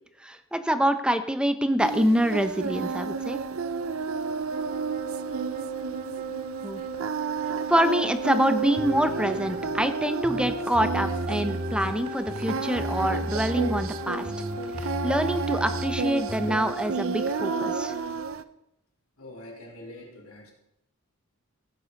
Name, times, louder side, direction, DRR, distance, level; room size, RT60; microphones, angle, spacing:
voice 1, 0.2-3.4 6.6-6.8 7.7-14.3 14.8-17.9, equal, 5° right, 10 dB, 0.8 m, -26 dB
Singing, 1.8-18.4, right 5 dB, 70° right, 0.6 m, -32 dB
sound 1, 4.5-17.9, right 2 dB, 50° right, 2.4 m, -36 dB
sound 2, 8.8-9.8 10.2-11.9 12.3-14.0 14.2-16.6, equal, 35° right, 1.8 m, -35 dB
voice 2, 19.2-20.5, left 1 dB, 70° left, -1 dB, 3.6 m, -44 dB
15.5 x 8.5 x 5.3 m, 0.81 s
head